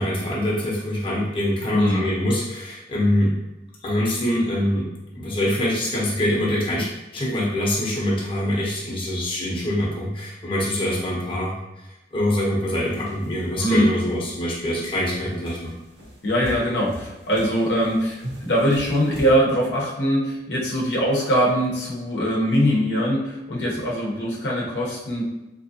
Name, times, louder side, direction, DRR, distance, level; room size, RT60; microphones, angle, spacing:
voice 1, 0.0-3.3 3.8-4.9 5.1-11.5 12.1-15.7, left 1 dB, 30° left, -5 dB, 0.9 m, -24 dB
voice 2, 1.7-2.0 13.6-13.9 16.2-25.3, equal, 70° left, -4 dB, 0.9 m, -22 dB
sound 1, 12.8-14.2 14.7-15.0 15.5-19.3, equal, 70° right, 0.8 m, -39 dB
3.7 x 3.0 x 2.8 m, 0.99 s
head